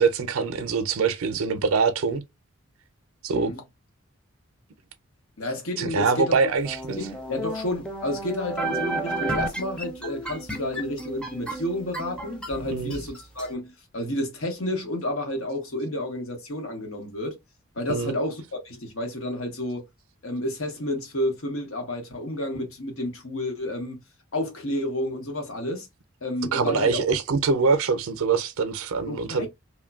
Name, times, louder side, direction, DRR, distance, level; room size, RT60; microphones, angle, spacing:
voice 1, 0.0-2.2 3.2-3.5 5.8-7.0 12.7-13.0 17.9-18.1 26.5-29.5, right 5 dB, 90° right, 0.5 m, -24 dB
voice 2, 5.4-6.4 7.0-17.4 17.7-19.9 20.2-24.0 24.3-25.9 26.2-27.0 29.1-29.5, left 1 dB, 80° left, 1.0 m, -30 dB
sound 1, 6.7-13.5, right 2 dB, 5° left, 0.4 m, -32 dB
3.0 x 2.2 x 2.3 m
head